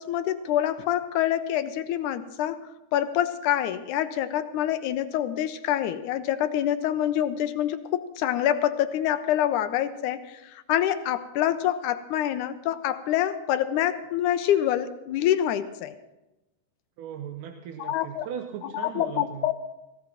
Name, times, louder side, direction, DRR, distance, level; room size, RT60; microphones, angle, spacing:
voice 1, 0.0-2.6 2.9-16.0 17.8-18.3 18.7-19.5, left 11 dB, 80° left, 11 dB, 2.1 m, -26 dB
voice 2, 17.0-19.5, right 8 dB, 85° right, 5 dB, 2.3 m, -38 dB
18.0 x 16.0 x 3.0 m, 0.96 s
omnidirectional pair, 3.7 m